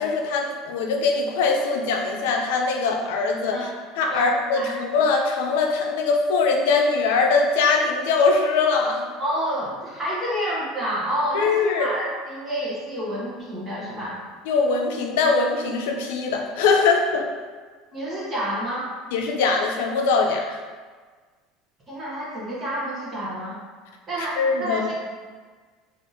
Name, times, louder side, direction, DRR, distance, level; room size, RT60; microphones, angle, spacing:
voice 1, 0.0-9.1 11.3-11.9 14.5-17.3 19.1-20.6 24.4-24.9, left 4 dB, 85° left, 1 dB, 0.4 m, -22 dB
voice 2, 4.1-4.8 9.2-14.2 17.9-18.9 21.9-23.6 24.1-24.9, right 1 dB, 20° right, -7 dB, 0.8 m, -29 dB
3.4 x 2.5 x 2.7 m, 1.5 s
cardioid pair, 165°, 0 cm